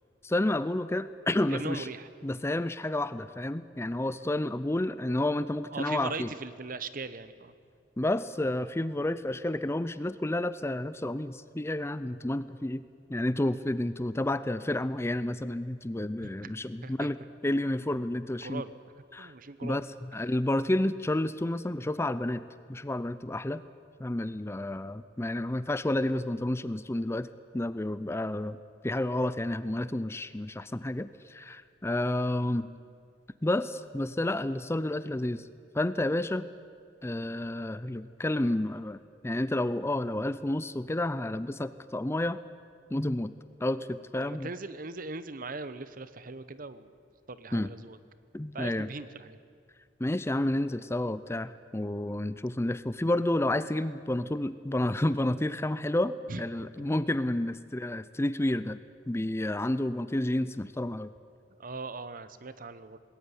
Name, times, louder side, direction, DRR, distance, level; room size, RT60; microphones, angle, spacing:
voice 1, 0.2-1.9 2.2-6.3 8.0-12.8 13.1-17.2 17.4-18.6 19.1-19.3 19.6-22.4 22.7-23.6 24.0-27.3 27.5-28.6 28.8-32.7 33.4-35.4 35.7-36.5 37.0-42.4 42.9-43.3 43.6-44.5 47.5-47.7 48.3-48.9 50.0-58.8 59.1-61.1, left 1 dB, 15° left, 15 dB, 0.5 m, -30 dB
voice 2, 1.5-2.1 5.7-7.5 16.2-16.5 16.8-17.1 18.4-18.7 19.2-19.8 44.2-46.9 47.3-48.0 48.5-49.4 56.3-56.9 61.6-63.0, right 3 dB, 50° right, 13 dB, 1.0 m, -40 dB
20.0 x 17.5 x 9.7 m, 2.1 s
head